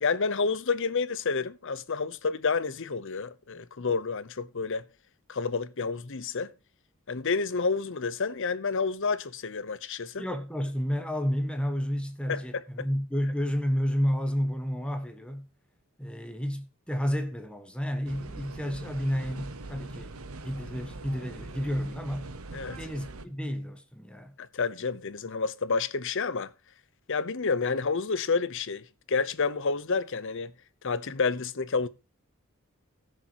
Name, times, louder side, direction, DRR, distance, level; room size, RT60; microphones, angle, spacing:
voice 1, 0.0-4.9 5.3-6.5 7.1-10.2 12.3-12.4 12.8-12.9 22.5-22.8 24.4-26.5 27.1-30.5 30.8-31.9, left 4 dB, 60° left, 0.8 m, -29 dB
voice 2, 10.2-15.5 16.0-20.1 20.4-22.3 22.8-24.3, equal, 5° left, 1.2 m, -31 dB
sound 1, 18.0-23.2, right 2 dB, 80° right, 1.1 m, -42 dB
19.0 x 6.6 x 3.0 m
head